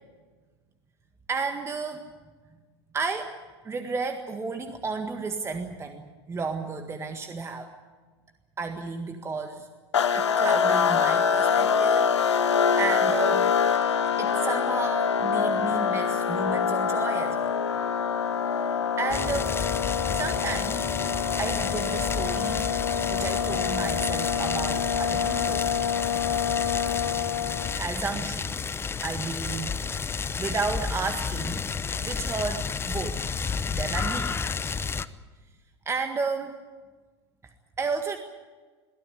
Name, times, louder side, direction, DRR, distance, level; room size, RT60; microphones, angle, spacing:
voice 1, 1.3-2.1 2.9-3.4 3.6-7.7 8.6-9.7 10.1-12.1 12.4-13.5 13.8-17.5 19.0-19.5 20.1-20.9 21.4-22.7 23.1-25.7 27.8-28.7 29.0-33.3 33.7-34.3 35.9-36.6 37.8-38.2, right 4 dB, 20° right, 5 dB, 1.8 m, -32 dB
sound 1, 9.9-27.8, left 7 dB, 80° left, 1.4 m, -25 dB
sound 2, 19.1-35.1, left 5 dB, 15° left, 0.8 m, -31 dB
23.0 x 16.0 x 9.7 m, 1.4 s
hypercardioid pair, 95°, 15 cm